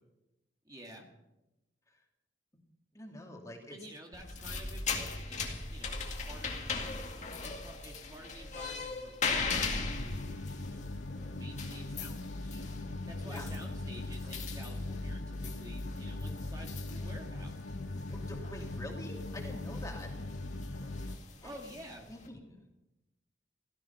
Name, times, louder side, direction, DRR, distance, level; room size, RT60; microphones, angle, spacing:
voice 1, 0.7-1.1 3.7-6.8 7.4-11.0 11.3-17.8 21.4-22.0, right 1 dB, 20° right, 1 dB, 2.0 m, -51 dB
voice 2, 2.9-3.8 13.2-13.5 18.1-20.1 21.4-21.5 22.1-22.6, left 1 dB, 20° left, 1 dB, 2.7 m, -46 dB
sound 1, 4.1-22.3, left 4 dB, 40° left, 2.2 m, -40 dB
sound 2, 9.7-21.2, left 2 dB, 80° left, 0.9 m, -40 dB
17.0 x 14.0 x 5.8 m, 0.96 s
head